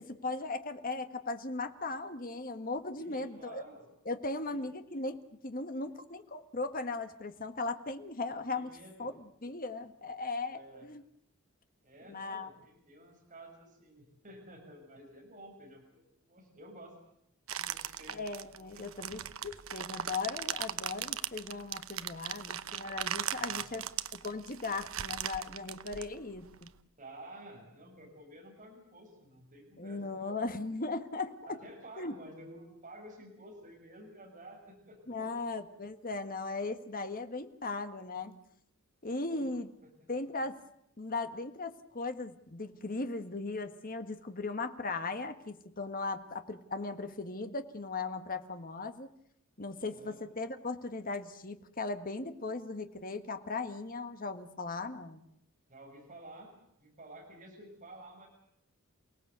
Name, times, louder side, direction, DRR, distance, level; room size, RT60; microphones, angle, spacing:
voice 1, 0.0-3.6 4.0-8.7 9.0-11.0 12.1-12.5 17.6-17.7 18.1-23.9 24.1-26.7 29.8-31.6 32.0-32.1 35.1-38.4 39.0-39.7 40.1-40.6 41.0-49.1 49.6-55.2, left 3 dB, 40° left, 8 dB, 1.6 m, -38 dB
voice 2, 3.0-3.8 4.4-4.7 8.2-9.1 10.5-10.9 11.8-16.9 17.7-18.3 18.7-18.9 23.4-23.7 27.0-30.2 31.4-35.4 39.2-39.5 49.8-50.2 55.7-56.5 56.8-58.3, right 1 dB, 35° right, 0 dB, 6.8 m, -52 dB
sound 1, 17.5-26.7, right 10 dB, 70° right, 0.9 m, -38 dB
29.0 x 18.5 x 8.2 m, 0.78 s
head